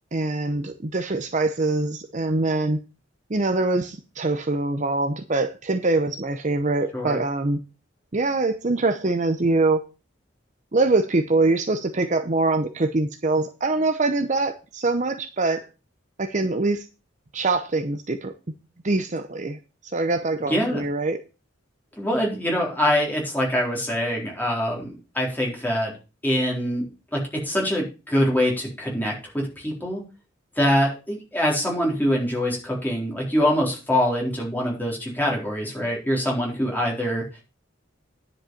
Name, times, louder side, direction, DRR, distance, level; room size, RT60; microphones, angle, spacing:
voice 1, 0.1-2.8 3.3-7.6 8.1-9.8 10.7-15.7 16.2-16.9 17.3-18.3 18.8-21.2, right 2 dB, 40° right, 7 dB, 0.7 m, -24 dB
voice 2, 20.5-20.8 22.0-25.9 26.2-26.8 27.1-30.0 30.6-37.2, equal, 10° left, -2 dB, 4.1 m, -24 dB
10.0 x 5.4 x 7.0 m, 0.31 s
head